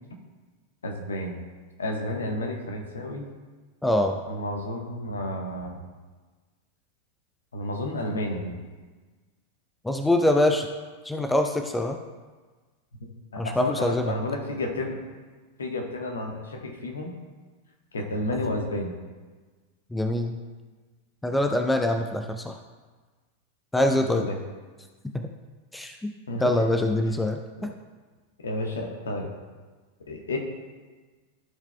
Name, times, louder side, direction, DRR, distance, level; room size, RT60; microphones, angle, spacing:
voice 1, 0.8-1.4 1.8-3.3 4.3-5.8 7.5-8.6 13.3-15.0 15.6-17.2 17.9-18.9 23.8-24.4 26.3-26.6 27.6-27.7 28.4-29.3 30.1-30.4, left 1 dB, 70° left, 2 dB, 1.2 m, -31 dB
voice 2, 3.8-4.2 9.8-10.7 11.0-12.0 13.4-14.1 19.9-20.4 21.2-22.6 23.7-24.3 25.1-25.3 25.7-26.1 26.4-27.7, left 1 dB, 5° left, 4 dB, 0.5 m, -24 dB
14.5 x 4.8 x 2.3 m, 1.4 s
figure-of-eight pair, 90°, 0 cm